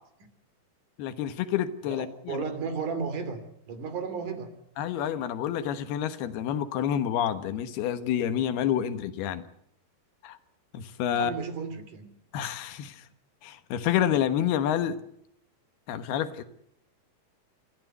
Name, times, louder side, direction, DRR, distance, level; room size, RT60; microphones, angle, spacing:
voice 1, 1.0-2.4 4.8-9.4 10.2-10.4 10.7-11.3 12.3-13.0 13.4-15.0 15.9-16.4, left 10 dB, 85° left, 11 dB, 3.3 m, -28 dB
voice 2, 1.8-4.5 11.1-12.1, right 5 dB, 55° right, 9 dB, 4.2 m, -34 dB
26.5 x 15.0 x 8.0 m, 0.74 s
omnidirectional pair, 4.4 m